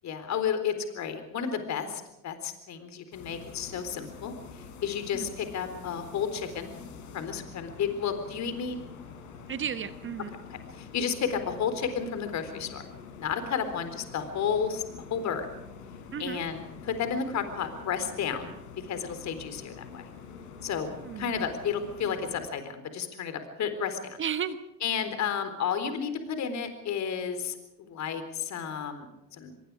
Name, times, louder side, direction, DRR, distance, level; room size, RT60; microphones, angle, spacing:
voice 1, 0.0-4.3 4.8-6.7 7.1-8.8 10.7-12.8 13.2-14.8 15.1-15.5 16.2-18.5 18.8-20.1 20.6-24.2 24.8-29.5, left 7 dB, 35° left, 9 dB, 4.0 m, -32 dB
sound 1, 3.1-22.5, left 6 dB, 60° left, 5.0 m, -46 dB
voice 2, 9.5-10.3 16.1-16.4 20.6-20.7 21.0-21.3 24.2-24.6, right 8 dB, 25° right, 12 dB, 1.2 m, -34 dB
25.0 x 22.5 x 4.8 m, 0.89 s
hypercardioid pair, 95°, 50 cm